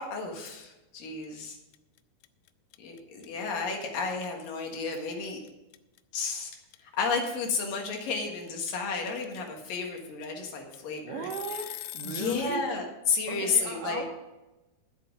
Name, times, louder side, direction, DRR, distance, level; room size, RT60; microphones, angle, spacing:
voice 1, 0.0-1.6 2.8-5.4 6.1-6.5 7.0-11.3 12.0-14.0, left 5 dB, 60° left, 1 dB, 2.9 m, -32 dB
sound 1, 1.2-1.5 1.7-12.5, left 16 dB, 85° left, 2.7 m, -42 dB
voice 2, 11.0-11.7 11.9-12.7 13.3-14.0, right 6 dB, 85° right, 0 dB, 3.3 m, -36 dB
11.5 x 8.4 x 5.2 m, 1.0 s
omnidirectional pair, 5.1 m